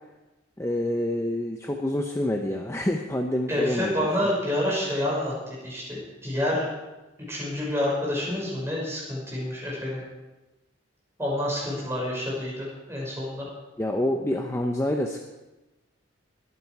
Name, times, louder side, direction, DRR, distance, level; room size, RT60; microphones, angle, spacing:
voice 1, 0.6-4.3 13.8-15.2, left 1 dB, 15° left, 3 dB, 0.7 m, -27 dB
voice 2, 3.5-6.7 7.3-10.0 11.2-13.5, left 1 dB, 15° right, -5 dB, 5.8 m, -28 dB
22.0 x 9.7 x 4.8 m, 1.1 s
head